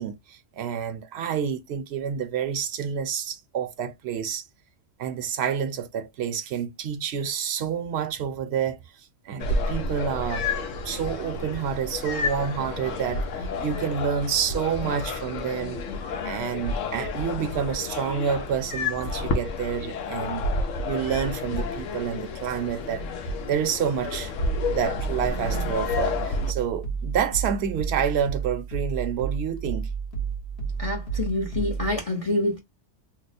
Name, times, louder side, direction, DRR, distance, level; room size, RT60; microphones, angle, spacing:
voice 1, 0.0-4.4 5.0-8.8 9.3-10.5 10.8-15.9 16.2-20.5 20.9-23.0 23.5-24.3 24.7-29.9, right 8 dB, 65° right, 0.8 m, -28 dB
sound 1, 9.4-26.5, left 3 dB, 80° left, 1.0 m, -30 dB
sound 2, 24.5-32.0, right 6 dB, 60° left, 1.3 m, -31 dB
voice 2, 30.8-32.6, left 2 dB, 35° left, 0.8 m, -27 dB
2.9 x 2.0 x 4.0 m
omnidirectional pair, 1.3 m